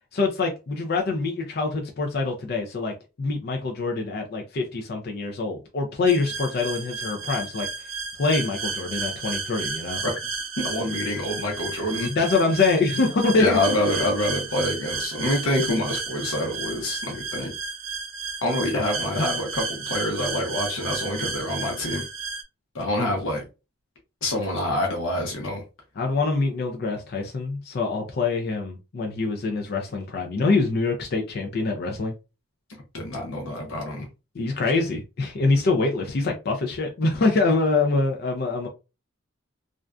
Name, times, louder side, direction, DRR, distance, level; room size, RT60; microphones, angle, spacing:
voice 1, 0.1-2.9 3.2-7.7 8.2-10.0 12.1-13.8 26.0-32.1 34.3-38.7, left 3 dB, 45° left, 0.4 m, -24 dB
sound 1, 6.1-22.4, right 4 dB, 75° right, 0.6 m, -32 dB
voice 2, 10.6-12.1 13.3-17.5 18.4-22.0 22.7-23.4 24.2-25.6 32.9-34.0, left 1 dB, 70° left, 0.7 m, -26 dB
2.5 x 2.2 x 2.3 m
head